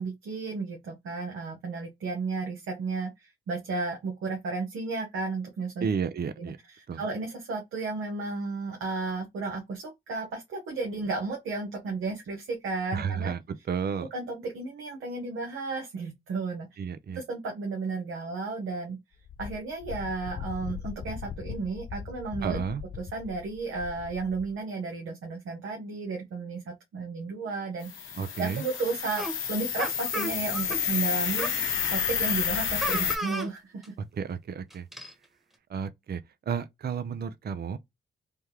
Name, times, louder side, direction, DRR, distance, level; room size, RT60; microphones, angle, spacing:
voice 1, 0.0-5.8 6.4-6.5 7.0-13.3 13.9-16.7 17.2-19.0 19.4-22.6 23.0-33.8, right 3 dB, 85° right, 0.9 m, -33 dB
voice 2, 5.8-6.6 6.9-7.0 12.9-13.4 13.6-14.1 16.8-17.2 22.4-22.8 28.2-28.6 34.1-34.9 35.7-37.8, right 7 dB, 50° right, 0.5 m, -32 dB
Wind, 19.2-24.6, left 7 dB, 40° left, 0.4 m, -40 dB
sound 1, 27.8-33.2, left 7 dB, 80° left, 0.8 m, -30 dB
sound 2, 29.2-29.3 29.8-30.8 31.4-31.6 32.8-33.5 33.8-33.9 34.7-35.1, right 1 dB, ahead, 1.2 m, -33 dB
3.4 x 2.2 x 2.9 m
supercardioid pair, 45°, 20 cm